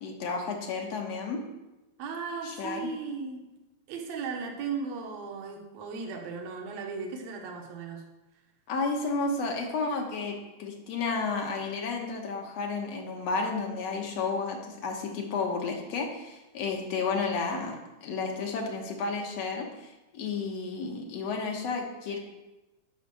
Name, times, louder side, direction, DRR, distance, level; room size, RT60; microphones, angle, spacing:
voice 1, 0.0-1.4 2.4-2.9 8.7-22.2, left 4 dB, 65° left, 2 dB, 2.4 m, -32 dB
voice 2, 2.0-3.4 3.9-8.0, right 5 dB, 70° right, 2 dB, 2.3 m, -36 dB
8.3 x 5.8 x 6.8 m, 1.0 s
omnidirectional pair, 3.3 m